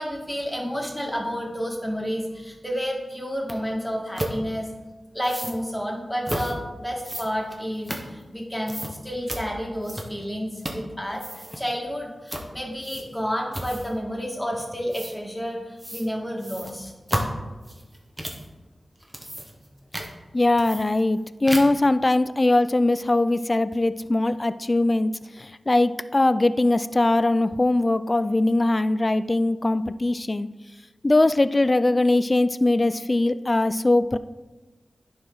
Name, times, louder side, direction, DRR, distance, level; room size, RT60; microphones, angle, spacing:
voice 1, 0.0-4.7 5.1-11.2 11.6-16.9, equal, 5° left, -1 dB, 2.0 m, -30 dB
sound 1, 3.5-3.6 4.2-4.4 5.2-5.6 6.2-6.5 7.0-8.4 8.7-8.9 9.3-9.4 9.8-10.3 10.6-10.9 11.1-11.6 12.3-12.5 12.8-13.2 13.5-14.0 14.9-15.1 15.8-16.1 16.4-18.5 19.0-19.7 19.9-20.1 20.6-21.2 21.5-21.9, equal, 15° right, 1.4 m, -32 dB
voice 2, 20.3-25.1 25.4-30.5 31.0-34.2, left 2 dB, 35° left, 14 dB, 0.3 m, -21 dB
10.0 x 4.8 x 3.9 m, 1.2 s
cardioid pair, 45°, 0 cm